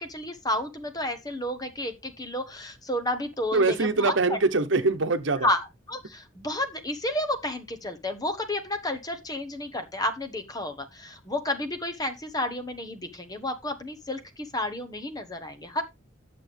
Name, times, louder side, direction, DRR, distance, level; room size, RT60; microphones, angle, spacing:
voice 1, 0.0-4.4 5.4-15.8, left 1 dB, 20° left, 1.1 m, -31 dB
voice 2, 3.5-5.5, right 3 dB, 70° right, 1.1 m, -23 dB
10.5 x 6.9 x 3.5 m
head